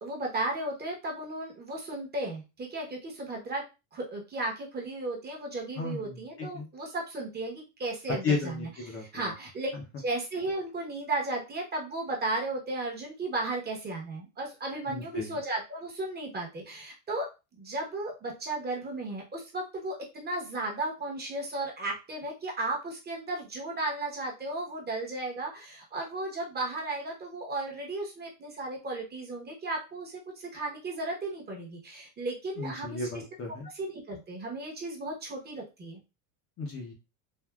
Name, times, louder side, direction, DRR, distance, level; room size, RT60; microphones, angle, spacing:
voice 1, 0.0-3.6 3.9-9.7 10.0-33.0 33.7-36.0, right 2 dB, 20° right, 1 dB, 0.8 m, -35 dB
voice 2, 5.8-6.7 8.1-9.3 9.7-9.8 14.9-15.4 32.6-33.7 36.6-36.9, left 3 dB, 30° left, 0 dB, 0.6 m, -34 dB
3.5 x 2.3 x 2.2 m, 0.27 s
supercardioid pair, 130°, 48 cm